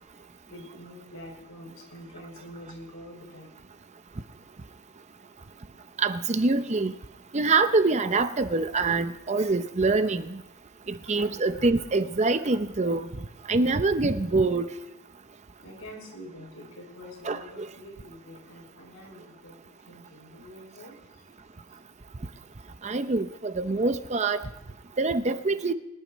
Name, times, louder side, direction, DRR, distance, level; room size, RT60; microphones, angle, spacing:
voice 1, 0.5-3.5 10.8-11.1 11.4-11.5 12.2-12.6 15.6-21.2, left 1 dB, 80° left, 6.0 m, -46 dB
voice 2, 6.0-6.9 7.3-10.4 11.1-13.1 13.5-14.7 17.2-17.7 22.8-24.5 25.0-25.7, right 3 dB, 30° right, 0.6 m, -25 dB
24.0 x 11.0 x 3.1 m
head